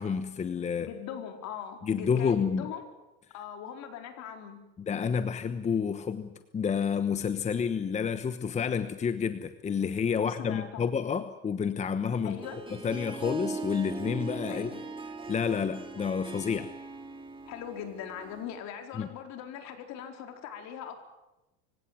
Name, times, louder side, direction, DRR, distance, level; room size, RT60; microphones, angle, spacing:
voice 1, 0.0-0.9 1.8-2.7 4.8-12.4 12.8-14.7 15.3-16.7 18.9-19.1, left 6 dB, 20° left, 11 dB, 1.1 m, -29 dB
voice 2, 0.8-2.9 3.3-4.6 10.2-10.9 12.2-12.6 14.5-14.8 17.5-21.0, left 8 dB, 55° left, 5 dB, 4.6 m, -41 dB
Harp, 12.1-18.6, right 3 dB, 15° right, 2.6 m, -40 dB
25.0 x 17.0 x 9.5 m, 0.96 s
supercardioid pair, 120°, 32 cm